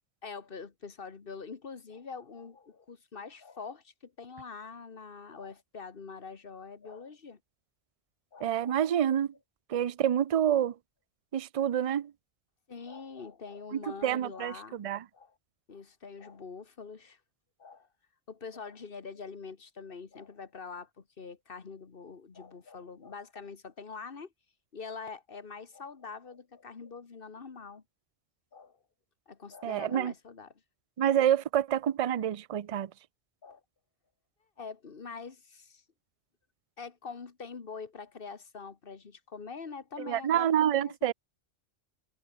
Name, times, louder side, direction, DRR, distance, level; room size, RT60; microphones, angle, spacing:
voice 1, 0.2-7.4 8.3-8.7 12.7-14.8 15.1-15.4 15.7-17.2 17.6-17.9 18.3-24.3 24.7-27.8 28.5-28.8 29.3-30.6 33.4-33.6 34.6-35.8 36.8-41.1, left 5 dB, 50° left, 1.7 m, -44 dB
voice 2, 8.4-9.3 9.7-10.7 11.3-12.1 13.7-15.0 29.6-30.1 31.0-32.9 40.1-41.1, right 10 dB, 60° right, 0.3 m, -27 dB
omnidirectional pair, 1.3 m